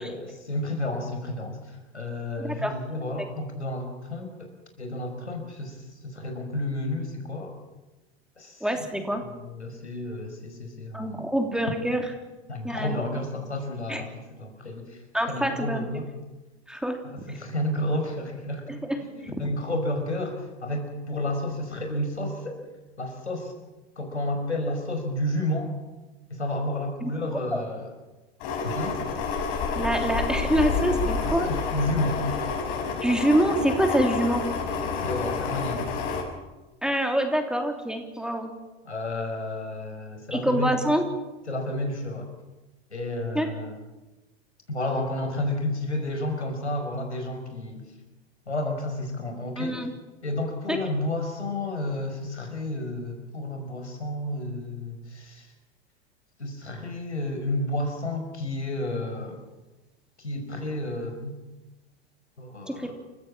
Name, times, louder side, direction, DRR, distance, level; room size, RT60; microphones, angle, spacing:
voice 1, 0.0-7.5 8.4-11.3 12.5-15.0 15.3-16.1 17.1-18.7 19.0-22.6 23.0-23.5 24.0-25.7 26.3-27.9 28.6-29.0 31.2-32.2 35.0-35.9 38.9-40.7 41.5-42.3 42.9-43.8 44.7-47.8 48.5-49.8 50.2-55.5 56.4-59.4 60.2-61.4 62.4-62.9, left 1 dB, 85° left, 4 dB, 5.3 m, -31 dB
voice 2, 2.4-2.7 3.2-3.3 8.6-9.2 10.9-12.0 12.6-13.0 13.9-14.0 15.1-15.8 16.7-17.0 18.7-19.0 27.0-27.1 29.7-31.5 33.0-34.4 36.8-38.5 40.3-41.0 43.3-43.5 49.6-49.9 50.7-50.8 62.7-62.9, right 1 dB, ahead, 4 dB, 3.1 m, -25 dB
sound 1, 28.4-36.2, left 5 dB, 55° left, 6.2 m, -29 dB
29.0 x 15.5 x 7.4 m, 1.1 s
figure-of-eight pair, 85°, 33 cm